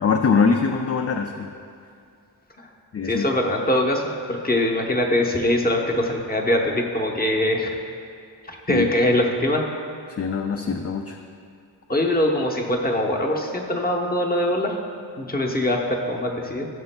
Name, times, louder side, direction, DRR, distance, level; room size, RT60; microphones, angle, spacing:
voice 1, 0.0-1.5 2.9-3.2 8.7-8.9 10.2-11.2, left 5 dB, 35° left, 4 dB, 0.4 m, -22 dB
voice 2, 3.0-7.8 8.5-9.7 11.9-14.8 15.2-16.7, left 1 dB, 20° left, 0 dB, 0.9 m, -22 dB
15.0 x 6.8 x 2.2 m, 2.4 s
wide cardioid pair, 100°, 44 cm